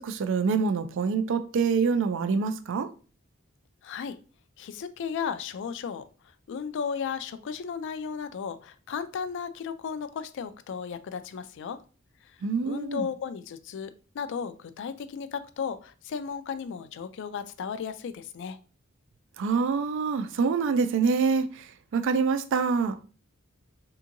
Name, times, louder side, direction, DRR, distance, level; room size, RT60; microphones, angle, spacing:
voice 1, 0.0-2.9 12.4-13.1 19.4-23.0, right 5 dB, 65° right, 0.4 m, -26 dB
voice 2, 3.8-4.2 4.6-6.0 6.5-11.8 12.2-12.4 12.6-18.6, left 6 dB, 60° left, 0.3 m, -35 dB
3.5 x 2.8 x 2.5 m
head